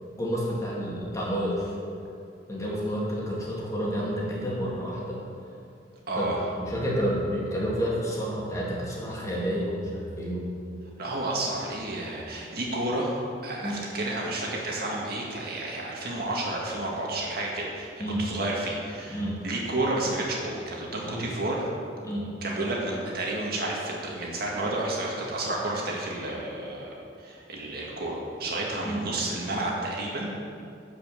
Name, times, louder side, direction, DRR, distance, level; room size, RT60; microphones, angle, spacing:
voice 1, 0.2-1.7 2.5-5.2 6.1-10.5 13.6-13.8 18.0-18.2 19.1-19.4 21.0-21.2 22.0-22.3 28.8-29.0, equal, 20° left, -5 dB, 2.4 m, -30 dB
voice 2, 6.1-6.4 11.0-17.9 18.2-21.7 22.4-30.4, right 2 dB, 55° right, -3 dB, 2.0 m, -31 dB
12.5 x 5.5 x 7.6 m, 2.4 s
head